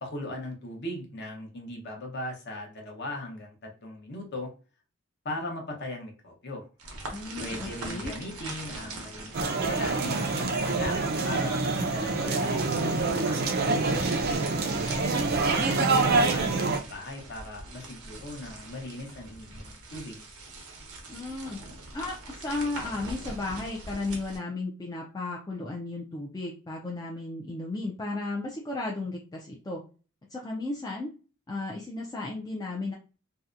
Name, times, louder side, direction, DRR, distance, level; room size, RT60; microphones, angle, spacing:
voice 1, 0.0-3.6 3.8-4.5 5.2-6.7 7.4-11.0 11.2-14.5 15.5-20.2, left 1 dB, 50° left, 1 dB, 0.8 m, -38 dB
sound 1, 6.8-24.4, right 2 dB, 85° right, 0.8 m, -42 dB
voice 2, 7.1-8.1 21.1-21.6 21.9-29.8 30.3-31.1 31.5-32.9, left 2 dB, 20° left, -2 dB, 0.4 m, -34 dB
sound 2, 9.3-16.8, right 3 dB, 45° right, 0.4 m, -26 dB
2.7 x 2.1 x 2.4 m, 0.34 s
head